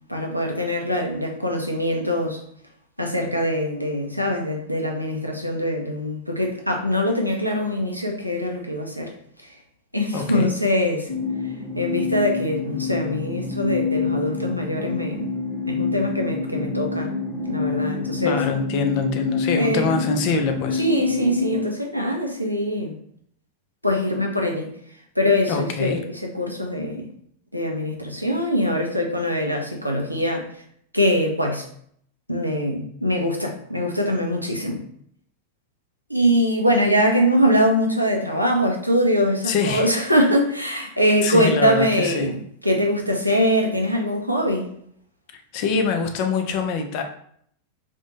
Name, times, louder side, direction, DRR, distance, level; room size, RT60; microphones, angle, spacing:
voice 1, 0.1-2.4 3.0-9.1 9.9-11.1 11.7-15.3 15.7-18.4 19.5-20.0 20.8-22.9 23.8-24.7 25.2-27.1 27.5-30.5 30.9-31.7 32.3-34.8 36.1-42.4 42.6-44.7, equal, 90° right, 1 dB, 0.4 m, -23 dB
voice 2, 10.1-10.5 18.2-20.8 25.5-26.0 39.4-39.9 41.2-42.3 45.3-47.0, left 5 dB, 45° left, 5 dB, 0.4 m, -24 dB
sound 1, 11.1-21.6, left 4 dB, 30° left, 1.0 m, -27 dB
2.5 x 2.1 x 2.8 m, 0.65 s
figure-of-eight pair, 90°, 0 cm